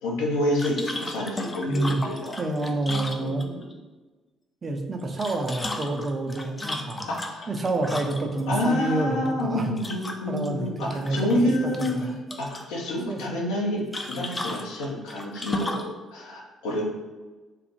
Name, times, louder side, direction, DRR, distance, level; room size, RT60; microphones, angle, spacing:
voice 1, 0.0-2.4 3.1-3.7 7.1-7.5 8.5-12.1 12.4-16.8, left 1 dB, 70° left, -2 dB, 0.6 m, -28 dB
sound 1, 0.6-3.7 5.0-8.4 9.8-10.5 10.8-11.5 11.8-12.7 13.9-15.9, left 1 dB, 20° left, 0.4 m, -35 dB
voice 2, 1.7-2.0 2.4-3.4 4.6-7.1 7.5-10.0 10.3-12.2 13.1-13.2, right 2 dB, 35° right, 3 dB, 0.5 m, -28 dB
3.2 x 2.0 x 2.9 m, 1.2 s
figure-of-eight pair, 45°, 0 cm